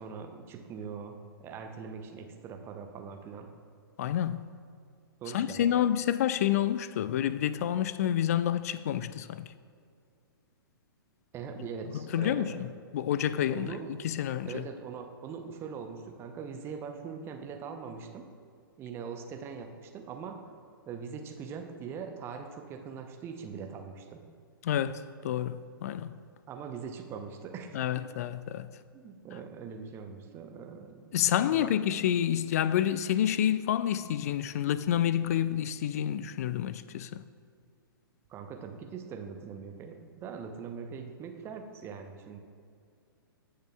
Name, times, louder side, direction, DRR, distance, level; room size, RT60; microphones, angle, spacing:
voice 1, 0.0-3.5 5.2-5.9 11.3-12.7 13.5-13.9 14.5-18.3 18.8-20.4 20.9-24.2 26.5-27.8 28.9-31.1 31.5-31.8 38.3-42.4, right 6 dB, 20° right, 0.7 m, -42 dB
voice 2, 4.0-4.4 5.3-9.5 12.1-12.7 12.9-13.7 14.0-14.6 24.6-26.2 27.7-28.7 31.1-37.2, left 10 dB, 40° left, 0.4 m, -28 dB
18.0 x 6.6 x 2.3 m
figure-of-eight pair, 115°, 12 cm